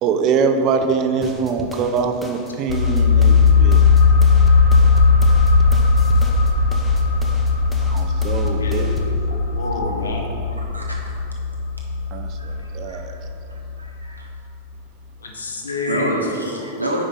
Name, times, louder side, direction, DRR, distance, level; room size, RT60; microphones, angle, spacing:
voice 1, 0.0-3.8 7.9-8.9 12.1-12.3 12.7-13.1, right 5 dB, 35° right, 7 dB, 0.5 m, -22 dB
sound 1, 1.2-9.2, equal, 5° left, 0.7 m, -37 dB
sound 2, 2.7-14.1 14.3-14.4, left 4 dB, 50° left, 1.1 m, -17 dB
voice 2, 8.4-10.3 15.2-16.2, left 3 dB, 70° left, 1 dB, 0.8 m, -28 dB
voice 3, 12.4-13.2 13.5-14.3 15.9-17.1, equal, 85° right, -1 dB, 0.9 m, -28 dB
4.9 x 4.8 x 5.3 m, 2.5 s
figure-of-eight pair, 90°, 0 cm